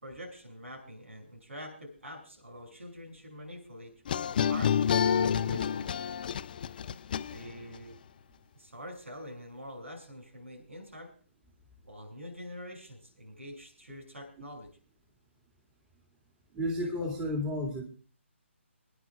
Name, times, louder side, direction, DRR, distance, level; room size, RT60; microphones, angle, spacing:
voice 1, 0.0-3.9 4.5-5.1 5.4-5.9 7.3-7.9 8.5-11.1 11.8-14.7, equal, 80° right, 2 dB, 6.1 m, -45 dB
sound 1, 4.1-7.8, left 8 dB, 40° left, 0.5 m, -28 dB
voice 2, 16.5-17.8, left 1 dB, 15° right, -1 dB, 2.1 m, -32 dB
29.0 x 10.5 x 2.3 m, 0.41 s
figure-of-eight pair, 140°, 7 cm